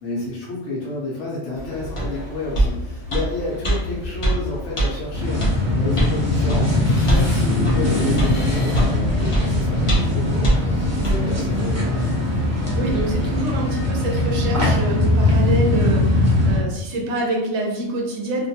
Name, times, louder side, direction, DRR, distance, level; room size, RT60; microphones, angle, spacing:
voice 1, 0.0-10.7 11.0-11.8, left 2 dB, 70° left, -7 dB, 1.0 m, -30 dB
sound 1, 1.5-13.4, equal, 90° left, 1.0 m, -33 dB
sound 2, 2.0-2.1 2.5-2.7 3.1-3.3 3.6-3.8 4.2-4.4 4.8-4.9 5.4-5.5 6.0-6.1 6.5-6.6 7.1-7.3 7.6-7.8 8.2-8.3 8.7-8.9 9.3-9.4 9.9-10.1 10.4-10.6 11.0-11.2, right 1 dB, 40° left, 0.5 m, -20 dB
sound 3, 5.1-16.6, left 2 dB, 20° right, 0.5 m, -20 dB
voice 2, 12.7-18.5, right 2 dB, 65° right, -1 dB, 0.9 m, -26 dB
2.6 x 2.2 x 2.7 m, 0.89 s
omnidirectional pair, 1.3 m